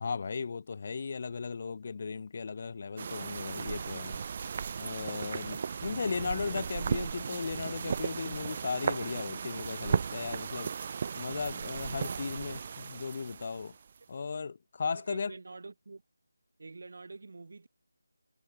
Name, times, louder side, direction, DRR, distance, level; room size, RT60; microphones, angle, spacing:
voice 1, 0.0-4.2 4.8-10.7 11.2-13.7 14.1-15.3, left 5 dB, 35° left, 0.3 m, -36 dB
sound 1, 3.0-14.0, right 6 dB, 30° right, 1.1 m, -36 dB
voice 2, 5.4-5.7 11.9-12.3 14.1-14.2 14.8-16.0 16.6-17.7, right 3 dB, 45° right, 2.9 m, -47 dB
figure-of-eight pair, 160°, 0 cm